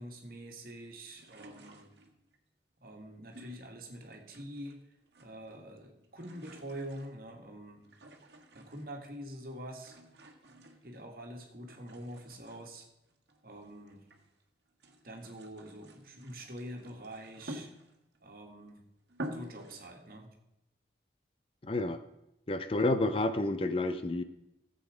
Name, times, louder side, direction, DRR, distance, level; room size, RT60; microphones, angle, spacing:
voice 1, 0.0-1.9 2.8-4.8 5.2-7.9 8.5-9.9 10.8-12.9 13.4-14.1 15.0-17.7 18.2-18.8 19.3-20.3, right 1 dB, 55° right, 2 dB, 1.9 m, -45 dB
sound 1, 1.1-2.4 3.3-4.8 5.0-5.7 5.9-9.0 9.7-11.3 11.7-14.3 14.7-18.2 18.7-18.8 19.1-19.8, right 1 dB, 75° right, 1.5 m, -49 dB
voice 2, 21.6-22.0 22.5-24.2, left 2 dB, 30° left, 10 dB, 0.6 m, -29 dB
14.5 x 7.8 x 4.9 m, 0.87 s
head